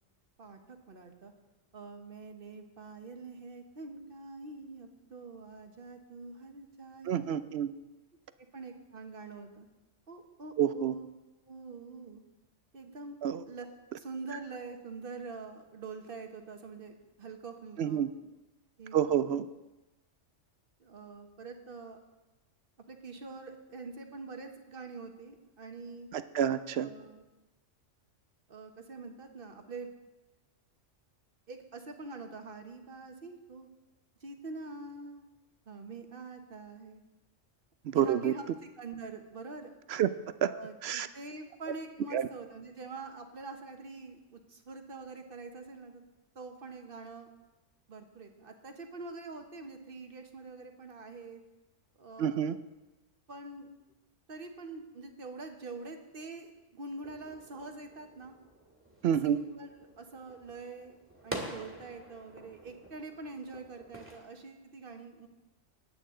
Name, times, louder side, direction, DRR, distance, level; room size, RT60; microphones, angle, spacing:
voice 1, 0.4-1.3 1.7-7.3 8.5-9.7 10.1-11.1 11.5-12.2 12.7-13.2 13.4-13.7 14.0-18.1 18.8-19.3 20.8-22.0 22.9-26.1 26.7-27.2 28.5-29.9 31.5-33.7 34.2-35.3 35.7-37.0 37.9-38.4 38.8-39.8 40.5-46.0 46.3-47.3 47.9-51.4 52.0-52.4 53.3-53.7 54.3-58.3 59.2-59.7 60.0-61.0 61.2-65.3, right 3 dB, 50° right, 5 dB, 1.3 m, -45 dB
voice 2, 7.1-7.7 10.6-10.9 13.2-13.4 17.8-18.1 18.9-19.5 26.1-26.9 37.8-38.3 39.9-40.1 40.4-40.5 40.8-41.1 42.1-42.3 52.2-52.6 59.0-59.4, right 9 dB, 65° right, 13 dB, 0.7 m, -28 dB
sound 1, 57.0-64.2, right 1 dB, 10° right, 1.9 m, -47 dB
20.0 x 8.7 x 3.7 m, 1.1 s
omnidirectional pair, 1.3 m